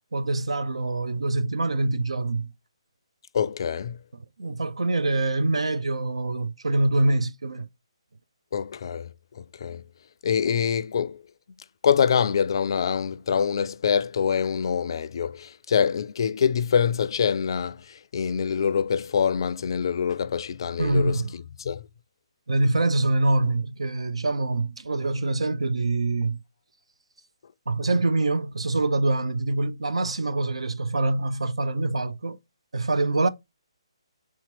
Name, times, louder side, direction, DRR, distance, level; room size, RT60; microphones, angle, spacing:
voice 1, 0.1-2.5 4.4-7.7 20.8-21.3 22.5-26.4 27.7-32.4 32.7-33.3, right 2 dB, 75° right, 0.5 m, -25 dB
voice 2, 3.3-4.0 8.5-9.1 9.3-9.8 10.2-11.2 11.8-21.9, left 7 dB, 50° left, 0.4 m, -25 dB
3.6 x 2.9 x 4.1 m
figure-of-eight pair, 145°, 3 cm